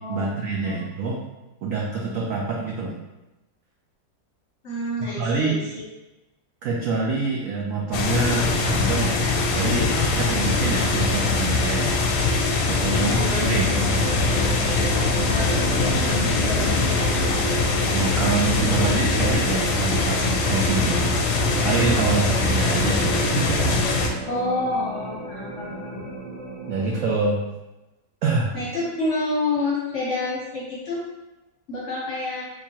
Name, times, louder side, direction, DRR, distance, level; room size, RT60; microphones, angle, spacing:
voice 1, 0.1-1.2 1.6-2.9 5.0-5.7 6.6-9.3 9.5-12.1 12.6-13.2 13.5-13.9 17.9-23.1 23.4-23.9 26.7-27.4 28.2-28.6, right 3 dB, 85° right, -2 dB, 0.7 m, -26 dB
voice 2, 4.6-5.8 12.9-13.6 15.2-15.5 15.8-17.1 24.3-26.1 28.5-31.0 31.7-32.4, left 2 dB, 55° left, -6 dB, 0.8 m, -28 dB
sound 1, 7.9-24.1, left 3 dB, 90° left, 1.3 m, -22 dB
sound 2, 13.6-27.1, right 2 dB, 40° right, 0.4 m, -34 dB
3.7 x 3.0 x 2.8 m, 1.0 s
omnidirectional pair, 2.0 m